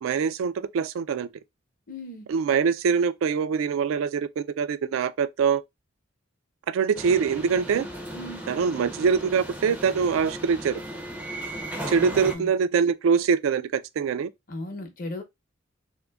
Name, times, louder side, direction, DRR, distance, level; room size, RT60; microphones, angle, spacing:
voice 1, 0.0-1.3 2.3-5.6 6.7-7.8 8.5-10.8 11.9-14.3, right 6 dB, 75° right, 0.3 m, -24 dB
voice 2, 1.9-2.3 8.1-8.4 12.0-12.5 14.5-15.2, left 1 dB, 45° left, 0.8 m, -36 dB
sound 1, 6.9-12.4, right 1 dB, 5° right, 0.5 m, -36 dB
3.6 x 2.5 x 2.2 m
head